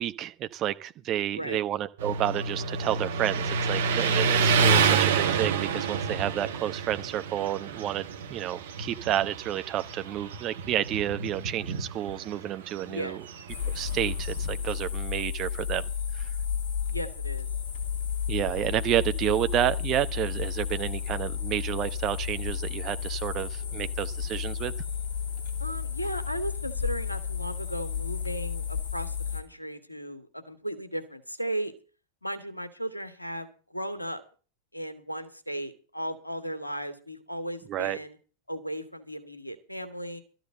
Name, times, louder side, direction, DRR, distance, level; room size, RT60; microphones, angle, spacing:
voice 1, 0.0-13.2 13.7-15.8 16.1-16.3 18.3-24.7 37.7-38.0, right 12 dB, 35° right, 0.9 m, -30 dB
Motorcycle, 2.0-14.6, right 5 dB, 60° right, 1.6 m, -28 dB
voice 2, 12.8-13.2 16.9-17.5 25.6-31.7 32.2-34.2 34.7-38.2 38.5-40.2, right 1 dB, 85° left, 1.9 m, -36 dB
sound 1, 13.5-29.4, left 7 dB, 50° left, 2.7 m, -32 dB
13.0 x 7.8 x 7.6 m
figure-of-eight pair, 90°, 0 cm